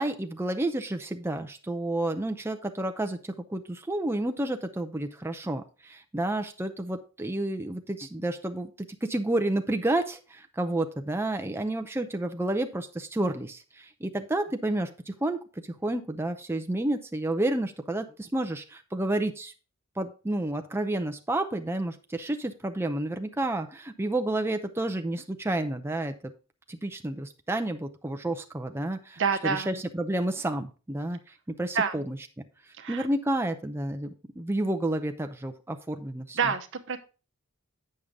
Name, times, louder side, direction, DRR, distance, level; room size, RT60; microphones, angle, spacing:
voice 1, 0.0-15.4 15.8-19.5 20.0-26.1 26.7-31.2 31.5-32.2 32.9-36.4, right 1 dB, 10° right, 5 dB, 0.5 m, -30 dB
voice 2, 29.2-29.8 31.7-32.0 32.8-33.1 36.3-37.0, right 6 dB, 55° right, 7 dB, 0.9 m, -28 dB
8.5 x 6.6 x 3.6 m, 0.34 s
head